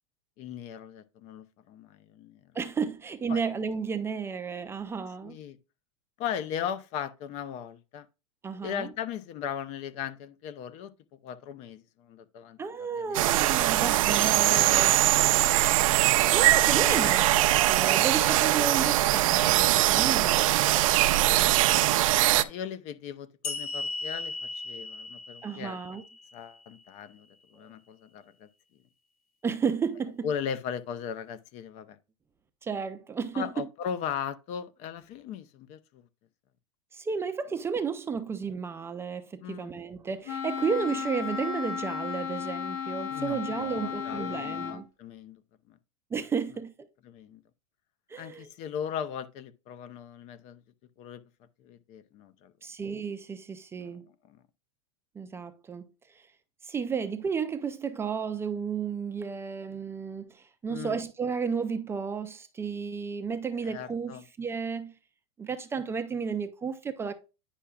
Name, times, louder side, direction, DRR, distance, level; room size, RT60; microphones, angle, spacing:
voice 1, 0.4-2.5 3.3-3.4 5.2-5.6 6.2-8.1 8.6-12.6 13.0-13.3 14.2-14.9 15.6-15.7 16.7-17.6 22.3-26.0 26.3-28.5 30.2-32.0 33.3-36.0 39.4-39.8 43.1-45.4 45.7-45.8 47.0-47.4 48.2-50.6 51.0-51.2 51.6-52.5 53.8-54.0 54.3-54.4 60.7-61.0 63.6-64.2, left 8 dB, 40° left, 0.6 m, -38 dB
voice 2, 2.5-5.4 8.4-8.9 12.6-15.0 16.2-17.4 17.7-21.6 25.4-26.0 27.6-27.7 29.4-30.3 32.6-33.7 36.9-44.9 46.1-46.9 48.1-48.5 52.6-54.1 55.2-56.3 56.6-64.9 65.4-67.1, right 6 dB, 15° right, 0.5 m, -33 dB
sound 1, 13.1-22.4, right 15 dB, 70° right, 0.5 m, -22 dB
sound 2, 23.4-26.8, left 3 dB, 85° left, 1.2 m, -37 dB
Wind instrument woodwind instrument, 40.3-44.8, left 7 dB, 65° left, 1.8 m, -34 dB
9.9 x 5.7 x 2.3 m
supercardioid pair, 140°, 18 cm